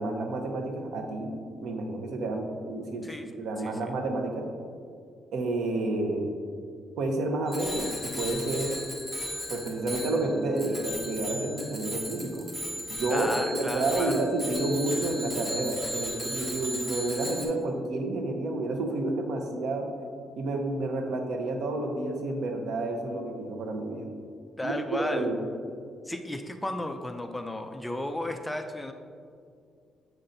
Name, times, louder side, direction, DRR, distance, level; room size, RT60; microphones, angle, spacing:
voice 1, 0.0-1.3 1.6-3.1 3.4-4.5 5.3-6.2 7.0-8.8 9.5-12.4 12.9-19.9 20.4-24.1 24.6-24.7 25.1-25.3, right 2 dB, 75° right, 3 dB, 0.8 m, -30 dB
voice 2, 3.6-3.9 13.1-14.2 24.6-25.3 26.0-28.9, left 1 dB, 5° left, 6 dB, 0.3 m, -34 dB
Bicycle bell, 7.5-17.5, equal, 15° right, 1.1 m, -36 dB
7.6 x 5.6 x 2.6 m, 2.3 s
cardioid pair, 155°, 0 cm